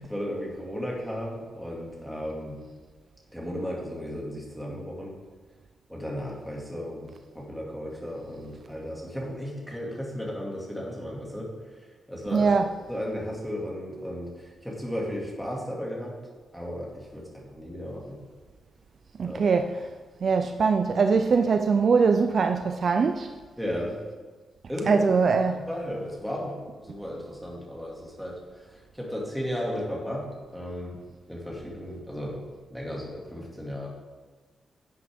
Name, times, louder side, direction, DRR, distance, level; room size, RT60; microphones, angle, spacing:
voice 1, 0.0-2.6 3.3-5.1 5.9-7.1 7.3-11.5 11.8-12.5 12.9-16.2 16.5-18.2 19.2-19.5 23.6-24.0 24.7-25.0 25.5-28.4 28.7-30.3 30.5-31.0 31.3-32.4 32.7-33.9, equal, ahead, 2.2 m, -35 dB
voice 2, 12.3-12.6 19.2-19.8 20.2-23.3 24.9-25.6, right 5 dB, 45° right, 0.4 m, -22 dB
11.0 x 8.3 x 3.6 m
wide cardioid pair, 175°, 0 cm